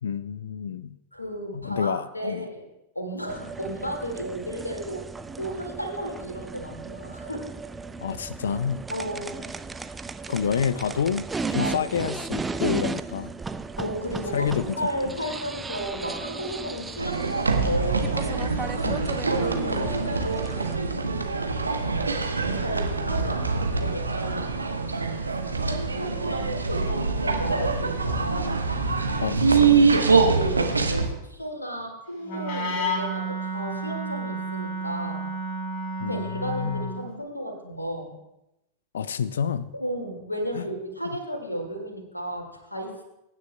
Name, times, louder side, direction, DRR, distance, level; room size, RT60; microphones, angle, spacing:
voice 1, 0.0-1.0 1.5-2.5 8.0-8.8 10.3-13.3 14.3-14.8 15.1-15.2 18.8-19.3 29.2-29.9 36.0-36.9 38.9-39.7 40.6-40.7 41.0-41.2, left 7 dB, 65° left, 16 dB, 0.4 m, -29 dB
voice 2, 1.1-2.7 3.0-5.1 5.4-7.5 8.9-9.5 11.6-11.9 13.8-18.2 19.3-20.3 22.1-24.4 25.7-29.0 30.1-35.3 36.1-38.1 39.7-43.0, equal, 85° left, 2 dB, 2.0 m, -33 dB
sound 1, 3.3-20.8, right 4 dB, 15° right, 0.4 m, -35 dB
sound 2, 17.0-31.1, right 4 dB, 80° right, 1.0 m, -24 dB
Wind instrument woodwind instrument, 32.2-37.1, right 1 dB, 45° left, 3.1 m, -31 dB
22.5 x 9.7 x 2.2 m, 0.88 s
figure-of-eight pair, 90°, 0 cm